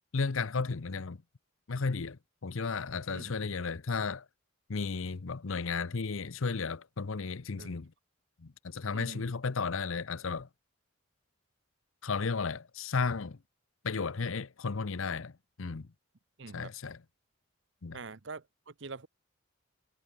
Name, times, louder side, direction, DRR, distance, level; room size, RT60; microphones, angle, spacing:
voice 1, 0.1-1.2 1.7-4.3 4.7-7.9 8.4-10.5 12.0-13.4 13.8-15.3 15.6-15.9 16.5-17.0 17.8-18.0, left 4 dB, 75° left, 0.7 m, -34 dB
voice 2, 3.1-3.5 7.5-7.8 8.9-9.2 16.4-16.7 17.9-19.1, right 4 dB, 60° right, 0.9 m, -45 dB
head